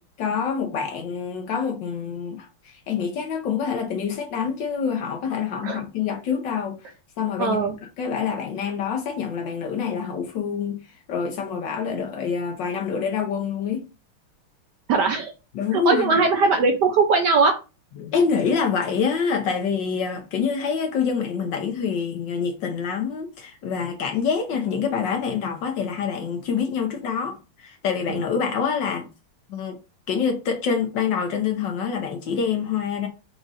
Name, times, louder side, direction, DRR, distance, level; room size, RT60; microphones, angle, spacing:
voice 1, 0.2-6.9 7.2-7.7 8.0-13.9 15.5-16.2 18.0-29.1 29.5-29.8 30.1-33.1, left 6 dB, 65° left, 1.2 m, -26 dB
voice 2, 7.4-7.7 14.9-15.3 15.7-17.5 28.1-28.2, right 4 dB, 70° right, 1.0 m, -20 dB
5.0 x 2.5 x 4.0 m
omnidirectional pair, 2.4 m